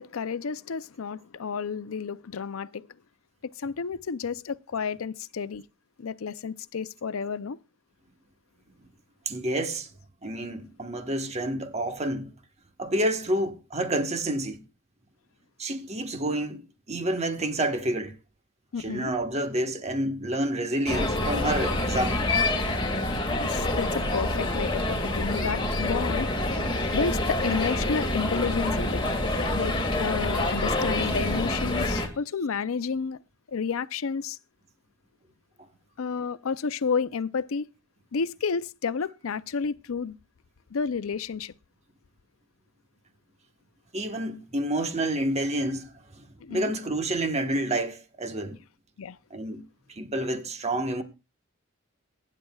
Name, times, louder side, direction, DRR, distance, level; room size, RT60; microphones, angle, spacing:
voice 1, 0.0-2.9 3.6-5.7 6.0-7.6 18.7-19.1 23.4-26.6 26.9-29.1 29.5-33.2 33.5-34.4 36.0-37.7 38.1-40.2 40.7-41.5 46.4-46.7 49.0-49.2, left 5 dB, 85° left, 0.5 m, -31 dB
voice 2, 9.3-9.9 10.2-12.3 12.8-14.6 15.6-18.1 18.8-22.3 43.9-46.2 46.5-48.6 49.3-49.6 50.0-51.0, right 1 dB, 30° right, 1.2 m, -29 dB
sound 1, 20.9-32.1, left 1 dB, 25° left, 2.0 m, -27 dB
22.5 x 10.0 x 2.3 m
head